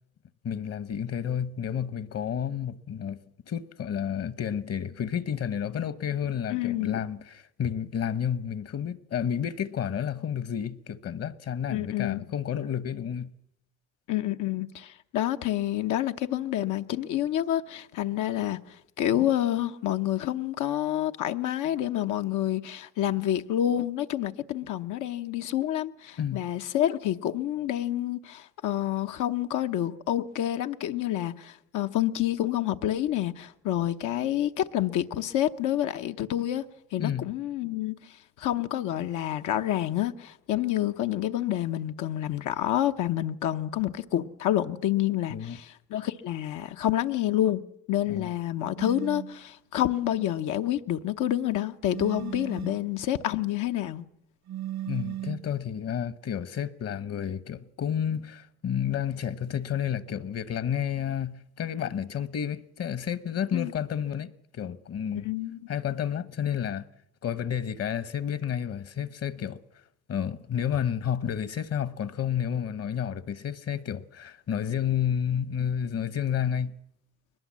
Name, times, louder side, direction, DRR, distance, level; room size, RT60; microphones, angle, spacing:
voice 1, 0.4-3.2 3.5-13.3 26.2-26.4 37.0-37.3 45.3-45.6 48.1-48.3 54.9-65.3 65.7-66.9 67.2-69.6 70.1-76.7, left 8 dB, 55° left, 1.1 m, -31 dB
voice 2, 6.5-7.0 11.7-12.3 14.1-36.6 36.9-38.0 38.4-47.6 47.9-54.0 63.5-63.7 65.1-65.7, left 12 dB, 85° left, 0.9 m, -28 dB
sound 1, 48.8-49.4 51.9-52.9 54.5-55.5, right 13 dB, 65° right, 0.9 m, -36 dB
21.5 x 20.0 x 7.4 m
cardioid pair, 90°, 30 cm